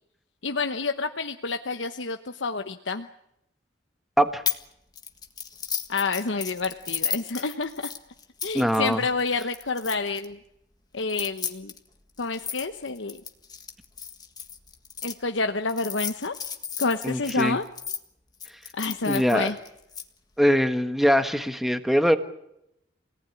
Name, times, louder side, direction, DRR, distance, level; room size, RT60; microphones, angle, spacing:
voice 1, 0.4-3.1 5.9-7.7 8.4-10.4 10.9-11.7 12.2-13.2 15.0-16.3 16.8-17.6 18.7-19.6, left 4 dB, 80° left, 7 dB, 1.1 m, -28 dB
sound 1, 4.5-4.7 5.0-10.3 11.0-15.1 15.7-18.0 18.4-20.0, left 7 dB, 20° left, 1.7 m, -34 dB
voice 2, 8.5-9.0 17.0-17.6 19.0-19.5 20.4-22.2, equal, ahead, 8 dB, 1.5 m, -22 dB
28.5 x 18.5 x 9.8 m, 0.83 s
head